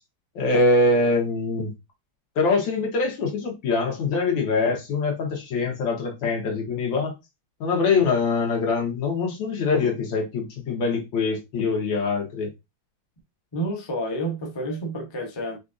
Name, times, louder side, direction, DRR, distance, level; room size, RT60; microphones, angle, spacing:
voice 1, 0.4-1.7 2.4-7.1 7.6-12.5, left 3 dB, 85° left, 1.8 m, -23 dB
voice 2, 13.5-15.6, right 1 dB, 35° left, 0.4 m, -29 dB
5.0 x 2.5 x 2.5 m
omnidirectional pair, 2.0 m